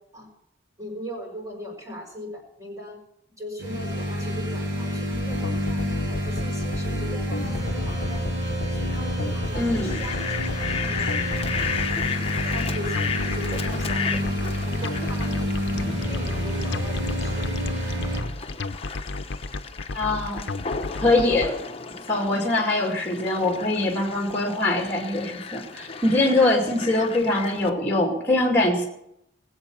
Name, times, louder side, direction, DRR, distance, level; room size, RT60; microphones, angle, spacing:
voice 1, 0.8-3.0 3.4-8.3 8.6-10.2 10.7-11.1 11.5-11.8 12.4-14.2 14.5-15.4 16.0-17.7 18.2-18.4 22.2-22.4, equal, 20° right, -1 dB, 5.6 m, -39 dB
sound 1, 3.6-18.2, equal, 85° right, 6.6 m, -28 dB
sound 2, 5.1-21.5, left 2 dB, 65° left, 0.7 m, -33 dB
Fowl, 9.5-27.7, left 5 dB, 30° left, 0.9 m, -34 dB
voice 2, 9.6-10.0 19.9-20.5 21.0-21.6 22.1-28.8, left 2 dB, 10° left, 0 dB, 2.3 m, -23 dB
20.5 x 8.0 x 6.9 m, 0.78 s
head